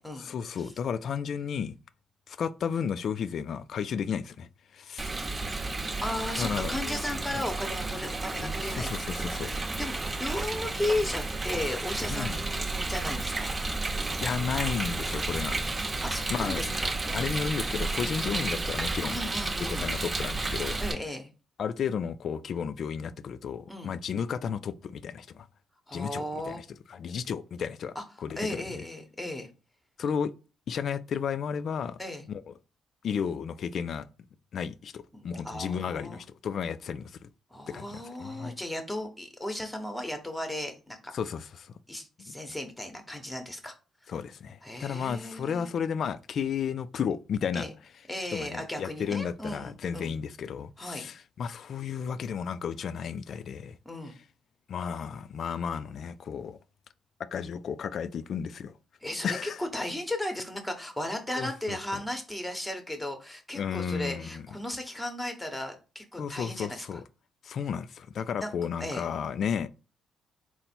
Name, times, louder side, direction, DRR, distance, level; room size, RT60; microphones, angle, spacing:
voice 1, 0.3-1.8 2.3-5.1 6.4-7.0 7.3-7.4 8.4-9.5 12.1-12.4 14.2-15.6 16.3-16.8 17.1-19.2 19.6-20.8 21.6-25.5 25.9-27.9 28.2-28.8 30.0-30.3 30.7-32.0 32.3-32.5 33.0-34.1 34.5-37.3 37.7-38.5 41.1-41.7 42.2-42.3 44.1-47.7 48.3-53.8 54.7-56.6 57.3-58.8 59.2-59.6 61.4-62.0 63.5-64.4 66.2-67.0 67.4-69.7, left 7 dB, 60° left, 0.3 m, -33 dB
Rain, 5.0-20.9, right 3 dB, 25° right, 1.0 m, -32 dB
voice 2, 6.0-8.9 9.4-13.5 16.0-17.3 19.1-19.9 20.8-21.3 23.7-23.9 25.9-26.6 27.9-28.0 28.4-29.5 32.0-32.2 35.1-36.2 37.5-41.1 41.9-43.7 44.0-44.1 44.6-45.8 47.5-47.7 48.1-50.1 50.8-51.1 53.8-54.2 59.0-67.0 68.4-68.5 68.8-69.0, left 1 dB, 10° left, 1.0 m, -35 dB
4.0 x 2.1 x 4.3 m
cardioid pair, 90°, 0 cm